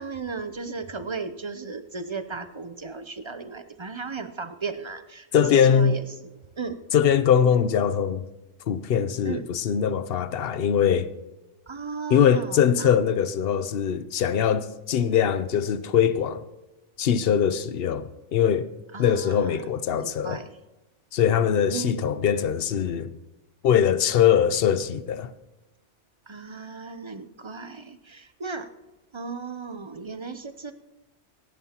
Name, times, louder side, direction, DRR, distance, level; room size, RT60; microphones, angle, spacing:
voice 1, 0.0-6.3 6.6-6.8 9.3-9.5 11.7-12.9 18.9-20.5 21.7-22.1 26.3-28.7 29.1-30.7, right 4 dB, 35° right, 0.5 m, -35 dB
voice 2, 5.3-6.0 6.9-8.2 8.7-11.1 12.1-16.4 17.0-18.7 19.0-20.4 21.1-23.1 23.6-25.3, left 8 dB, 60° left, 0.8 m, -22 dB
26.0 x 11.0 x 2.9 m
omnidirectional pair, 1.2 m